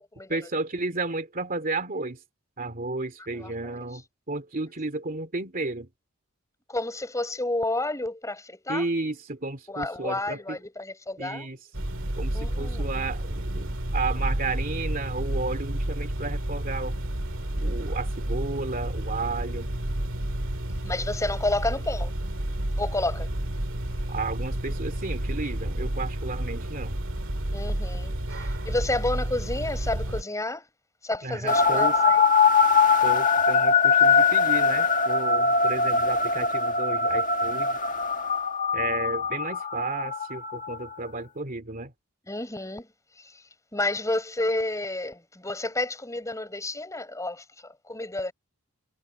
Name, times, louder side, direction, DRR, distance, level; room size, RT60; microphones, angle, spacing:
voice 1, 0.3-2.2 2.6-5.9 8.7-10.6 11.2-11.6 12.2-17.0 17.6-19.7 24.1-27.0 31.2-32.0 33.0-37.8 38.7-41.9, right 3 dB, 40° right, 2.7 m, -33 dB
voice 2, 6.7-8.9 9.7-11.5 12.3-12.9 20.8-22.2 22.8-23.3 27.5-30.7 31.0-32.3 42.3-42.9 43.2-43.4 43.7-48.3, left 2 dB, 15° left, 6.8 m, -30 dB
sound 1, 11.7-30.2, right 1 dB, 60° right, 2.1 m, -30 dB
sound 2, 31.5-40.9, left 4 dB, 35° left, 1.7 m, -22 dB
head